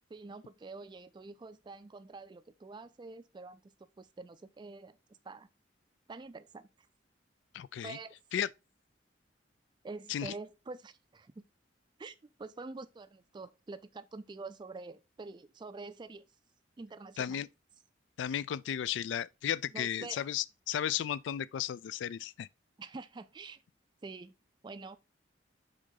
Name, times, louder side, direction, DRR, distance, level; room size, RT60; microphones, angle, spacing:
voice 1, 0.1-3.7 4.0-5.0 5.2-5.5 6.1-6.7 7.8-8.2 9.8-11.4 12.0-16.2 16.8-17.5 19.7-20.3 22.8-23.6 24.0-24.4 24.6-25.0, right 3 dB, 25° right, 0.3 m, -46 dB
voice 2, 7.5-8.0 8.3-8.5 10.1-10.3 17.2-17.5 18.2-22.5, left 10 dB, 75° left, 0.3 m, -34 dB
6.3 x 3.9 x 3.8 m
head